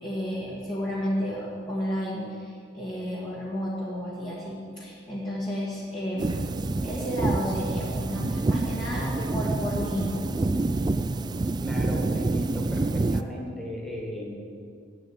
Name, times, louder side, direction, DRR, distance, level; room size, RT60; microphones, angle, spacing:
voice 1, 0.0-6.5 6.8-10.3, equal, 25° left, -8 dB, 1.8 m, -32 dB
sound 1, 6.2-13.2, right 2 dB, 25° right, 0.3 m, -27 dB
voice 2, 11.6-14.4, equal, ahead, -2 dB, 2.0 m, -37 dB
8.5 x 7.8 x 8.6 m, 2.3 s
head